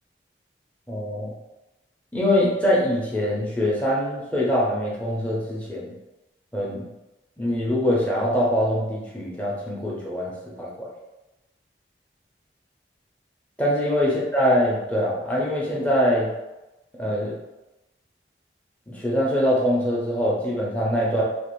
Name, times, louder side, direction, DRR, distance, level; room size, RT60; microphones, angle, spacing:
voice 1, 0.9-1.3 2.1-5.9 6.5-6.9 7.4-10.9 13.6-16.3 17.0-17.4 18.9-21.2, equal, 10° left, -6 dB, 0.5 m, -23 dB
2.5 x 2.4 x 3.0 m, 0.99 s
head